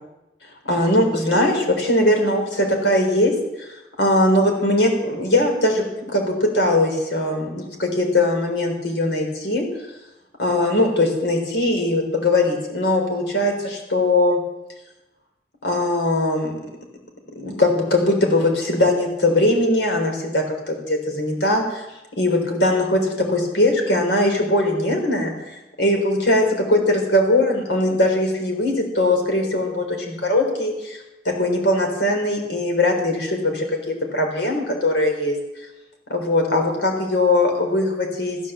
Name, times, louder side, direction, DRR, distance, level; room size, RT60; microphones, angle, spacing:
voice 1, 0.6-3.7 4.0-5.8 6.1-9.7 10.4-14.4 15.6-16.6 17.4-21.9 22.2-35.4 36.1-38.4, left 1 dB, 80° left, 3 dB, 4.1 m, -20 dB
14.5 x 10.0 x 7.5 m, 0.98 s
head